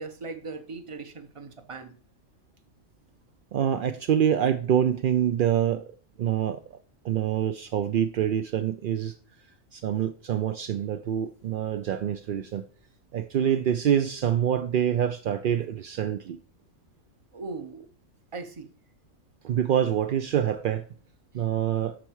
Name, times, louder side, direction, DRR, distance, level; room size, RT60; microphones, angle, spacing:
voice 1, 0.0-2.0 17.3-17.9 18.3-18.7 21.3-21.4, right 3 dB, 30° right, 0.8 m, -39 dB
voice 2, 3.5-5.8 6.2-6.6 7.0-9.1 9.7-12.6 13.1-16.4 19.4-20.8 21.3-21.9, right 9 dB, 70° right, 0.5 m, -26 dB
12.5 x 4.5 x 4.7 m
omnidirectional pair, 1.4 m